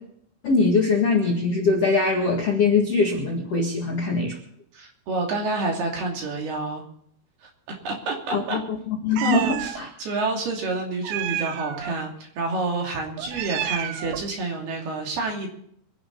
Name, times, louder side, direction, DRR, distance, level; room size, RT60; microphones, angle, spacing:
voice 1, 0.4-4.4 8.3-8.6 8.9-9.9, left 4 dB, 65° left, 0 dB, 1.5 m, -22 dB
voice 2, 4.7-6.8 7.4-7.5 7.8-8.6 9.2-15.5, right 3 dB, 55° right, 0 dB, 4.4 m, -28 dB
Meow, 9.2-9.8 11.0-11.9 13.2-14.3, right 11 dB, 75° right, 3.0 m, -30 dB
25.0 x 11.0 x 4.1 m, 0.68 s
omnidirectional pair, 5.9 m